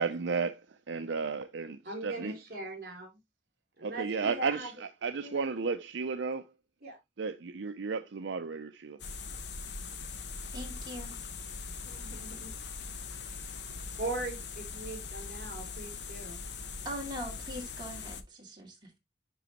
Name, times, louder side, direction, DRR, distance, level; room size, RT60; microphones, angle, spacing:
voice 1, 0.0-2.3 3.8-4.7 5.0-6.5 7.2-9.0, right 5 dB, 80° right, 0.5 m, -33 dB
voice 2, 1.8-3.1 3.8-4.7 5.2-5.4 6.8-7.0 11.5-12.5 13.2-13.4 14.0-16.4, right 2 dB, 55° right, 3.3 m, -40 dB
sound 1, 9.0-18.2, left 4 dB, 70° left, 1.0 m, -41 dB
voice 3, 10.5-11.1 16.8-19.0, equal, 25° right, 2.5 m, -41 dB
10.0 x 3.8 x 3.0 m
head